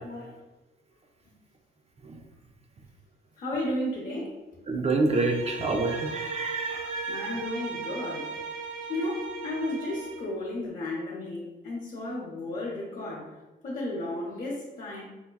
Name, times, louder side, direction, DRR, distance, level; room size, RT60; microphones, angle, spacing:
voice 1, 0.0-0.4 3.4-4.4 7.1-13.4 13.6-15.1, left 1 dB, 45° left, -7 dB, 0.9 m, -34 dB
voice 2, 4.7-7.4, right 3 dB, 30° right, 4 dB, 0.4 m, -28 dB
Bowed string instrument, 5.1-10.3, right 5 dB, 90° right, 0.5 m, -37 dB
5.4 x 2.2 x 2.3 m, 1.1 s
cardioid pair, 90°, 20 cm